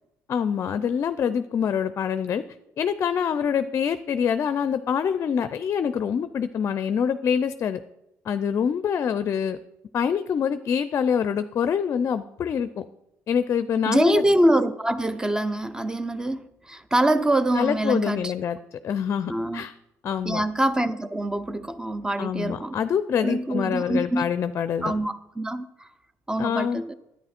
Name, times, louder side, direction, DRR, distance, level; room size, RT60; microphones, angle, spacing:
voice 1, 0.3-2.4 2.8-7.8 8.3-9.6 9.9-12.9 13.3-14.2 17.5-19.7 20.0-20.4 22.2-24.9 26.4-26.8, left 7 dB, 50° left, 13 dB, 0.5 m, -25 dB
voice 2, 13.9-18.3 19.3-19.6 20.2-22.8 23.2-24.2 24.8-25.9 26.3-26.9, right 1 dB, 10° right, 13 dB, 0.7 m, -24 dB
10.5 x 9.4 x 4.3 m, 0.86 s
supercardioid pair, 85°, 6 cm